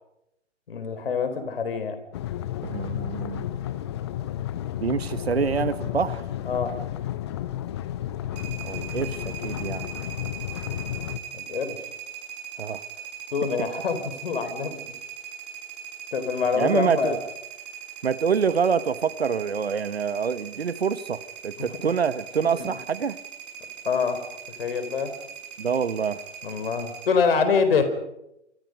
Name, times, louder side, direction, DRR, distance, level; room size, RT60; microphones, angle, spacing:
voice 1, 0.7-2.0 6.5-6.7 11.3-11.8 13.3-14.8 16.1-17.2 21.6-21.7 22.6-22.7 23.8-24.2 24.6-25.1 26.4-27.8, left 5 dB, 50° left, 9 dB, 4.5 m, -25 dB
sound 1, 2.1-11.2, left 12 dB, 20° left, 0.8 m, -32 dB
voice 2, 2.6-3.5 4.8-6.3 8.6-9.9 12.6-12.8 13.6-13.7 16.5-17.2 18.0-23.2 25.6-26.2, right 6 dB, 55° right, 16 dB, 1.2 m, -26 dB
sound 2, 8.3-27.1, right 9 dB, 35° right, 7.5 m, -40 dB
27.5 x 25.5 x 5.3 m, 0.85 s
figure-of-eight pair, 130°, 37 cm